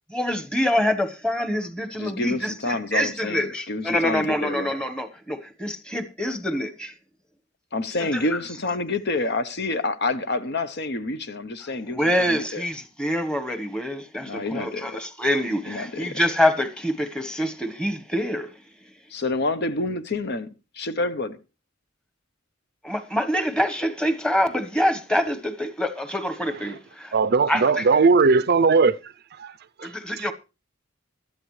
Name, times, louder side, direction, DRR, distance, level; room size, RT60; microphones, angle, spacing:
voice 1, 0.1-7.0 8.1-8.2 11.8-18.6 22.8-27.1 27.5-27.9 29.8-30.3, equal, 5° left, 1.2 m, -26 dB
voice 2, 2.0-4.7 7.7-12.6 14.2-15.0 15.7-16.2 19.1-21.4, left 2 dB, 55° left, 0.9 m, -28 dB
voice 3, 27.1-28.9 29.4-29.5 29.8-29.9, right 4 dB, 55° right, 0.5 m, -18 dB
16.5 x 12.0 x 3.2 m
head